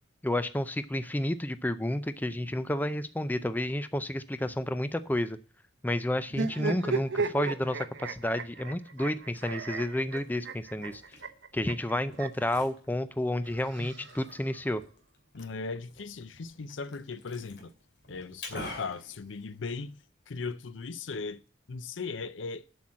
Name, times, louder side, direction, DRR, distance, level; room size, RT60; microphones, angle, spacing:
voice 1, 0.2-5.4 5.8-11.0 11.5-14.8, left 1 dB, 10° left, 0.4 m, -31 dB
sound 1, 6.3-12.5 13.5-14.6, right 4 dB, 70° right, 1.0 m, -35 dB
Liquid, 9.0-20.0, left 1 dB, 60° left, 2.6 m, -49 dB
voice 2, 15.3-17.7 18.1-21.4 21.7-22.6, left 4 dB, 75° left, 0.6 m, -38 dB
7.8 x 6.1 x 7.4 m
head